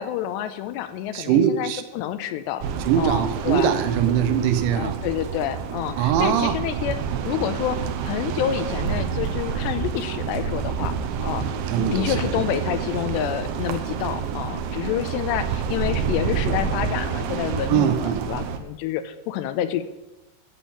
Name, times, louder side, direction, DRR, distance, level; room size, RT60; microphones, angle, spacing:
voice 1, 0.0-2.6 2.9-3.7 4.7-10.9 11.2-11.5 11.8-19.8, left 11 dB, 85° left, 11 dB, 2.8 m, -28 dB
voice 2, 1.1-1.8 2.9-5.0 6.0-6.6 11.7-12.1 17.7-18.2, right 9 dB, 90° right, 9 dB, 3.3 m, -21 dB
sound 1, 2.6-18.6, right 6 dB, 75° right, 2.4 m, -28 dB
10.0 x 7.7 x 8.5 m, 0.98 s
omnidirectional pair, 5.1 m